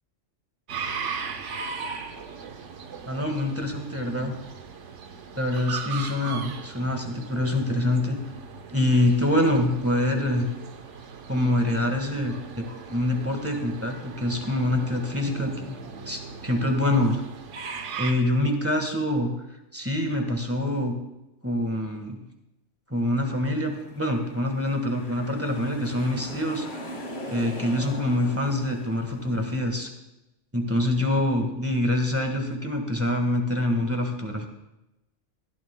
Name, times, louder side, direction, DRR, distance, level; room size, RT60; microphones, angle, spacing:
sound 1, 0.7-18.1, right 5 dB, 75° right, 1.2 m, -38 dB
voice 1, 3.0-4.3 5.3-8.2 8.7-10.5 11.3-15.8 16.1-17.2 18.0-19.3 19.7-20.9 21.4-22.2 22.9-26.7 27.3-29.9 30.5-34.5, left 1 dB, 10° right, 4 dB, 1.4 m, -25 dB
sound 2, 23.4-29.8, equal, 70° left, 2.3 m, -40 dB
18.0 x 12.5 x 2.2 m, 0.93 s
omnidirectional pair, 1.3 m